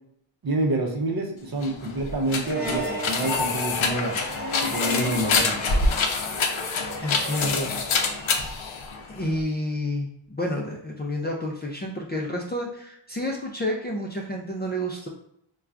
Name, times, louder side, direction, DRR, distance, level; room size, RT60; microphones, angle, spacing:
voice 1, 0.4-4.2 4.7-5.6, right 1 dB, 45° right, 2 dB, 0.7 m, -27 dB
sound 1, 1.5-9.4, left 4 dB, 70° left, 0.6 m, -26 dB
sound 2, 2.4-8.9, right 1 dB, 20° right, 0.9 m, -35 dB
voice 2, 7.0-7.7 9.1-15.1, left 1 dB, 20° left, -1 dB, 0.4 m, -29 dB
4.4 x 2.3 x 2.4 m, 0.73 s
wide cardioid pair, 110°, 49 cm